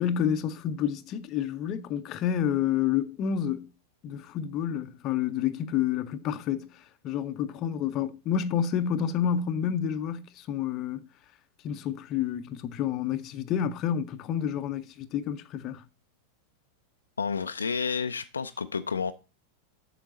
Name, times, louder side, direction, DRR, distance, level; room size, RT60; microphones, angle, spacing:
voice 1, 0.0-3.7 4.0-6.7 7.0-11.1 11.6-15.8, left 9 dB, 35° left, 0.7 m, -29 dB
voice 2, 17.2-19.1, left 5 dB, 75° left, 0.5 m, -30 dB
8.0 x 6.1 x 4.0 m
figure-of-eight pair, 90°, 0 cm